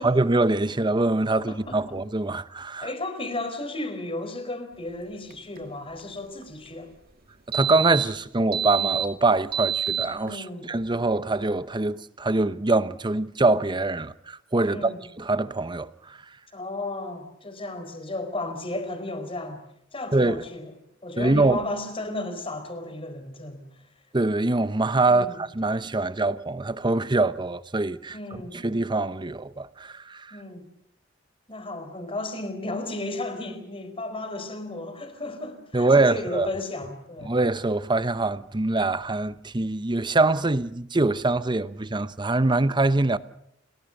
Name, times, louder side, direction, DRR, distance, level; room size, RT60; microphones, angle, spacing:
voice 1, 0.0-2.9 7.5-14.9 15.2-16.2 20.1-20.4 21.2-21.6 24.1-28.2 28.5-30.4 35.7-36.5 37.2-43.2, right 2 dB, 25° right, 0.9 m, -24 dB
voice 2, 1.5-2.0 2.8-6.9 10.2-10.7 14.6-15.0 16.5-19.6 19.9-20.7 21.0-23.7 25.1-25.4 28.1-28.6 30.3-30.6 31.5-37.3, left 2 dB, 30° left, 4.6 m, -34 dB
sound 1, 5.3-5.4 5.6-5.7 6.0-6.1 6.4-6.7 7.5-8.1 8.5-10.3, right 9 dB, 50° right, 2.1 m, -27 dB
30.0 x 20.0 x 6.6 m
head